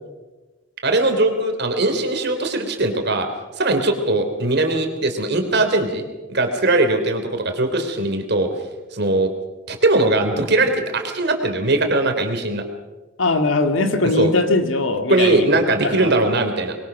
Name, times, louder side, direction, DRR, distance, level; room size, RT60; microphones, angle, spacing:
voice 1, 0.8-3.3 3.6-6.0 6.3-8.5 8.9-9.3 9.7-12.6 14.2-14.3 15.1-16.8, right 2 dB, 60° right, 6 dB, 3.2 m, -20 dB
voice 2, 13.2-15.5 15.8-16.1, left 3 dB, 85° left, 6 dB, 2.2 m, -20 dB
24.5 x 21.5 x 6.2 m, 1.2 s
head